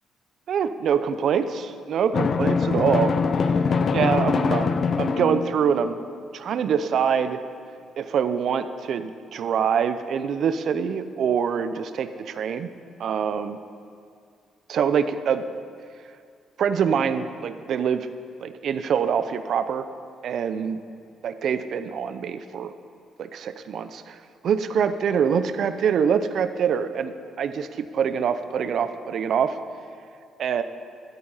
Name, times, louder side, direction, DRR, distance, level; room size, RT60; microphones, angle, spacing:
voice 1, 0.5-3.1 3.9-6.0 6.3-7.4 8.0-12.7 13.0-13.6 14.7-15.4 16.6-18.1 18.4-19.8 20.2-20.8 21.2-22.7 23.2-24.2 24.4-29.6 30.4-30.6, right 7 dB, 65° right, 11 dB, 0.6 m, -25 dB
Drum, 2.1-5.9, left 5 dB, 50° left, 0.5 m, -23 dB
13.5 x 8.6 x 5.6 m, 2.2 s
cardioid pair, 90°, 0 cm